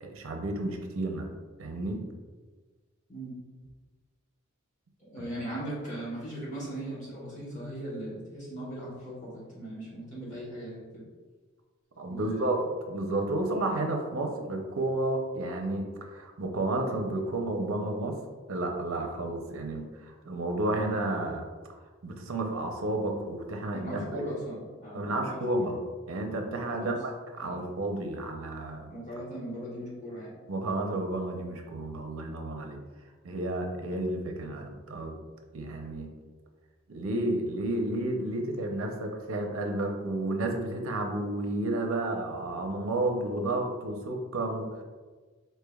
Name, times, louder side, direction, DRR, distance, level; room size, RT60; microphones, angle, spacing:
voice 1, 0.0-1.3 1.6-2.0 12.0-12.6 12.9-18.2 18.5-21.5 22.0-24.2 24.9-25.8 26.1-27.1 27.4-28.9 30.5-32.8 33.2-35.2 35.5-36.1 36.9-44.8, right 2 dB, 80° right, 3 dB, 0.6 m, -31 dB
voice 2, 5.0-11.1 12.1-12.6 23.7-25.7 26.7-26.9 27.4-27.7 28.9-30.3, right 1 dB, 40° left, -7 dB, 1.1 m, -39 dB
4.3 x 3.2 x 2.3 m, 1.4 s
head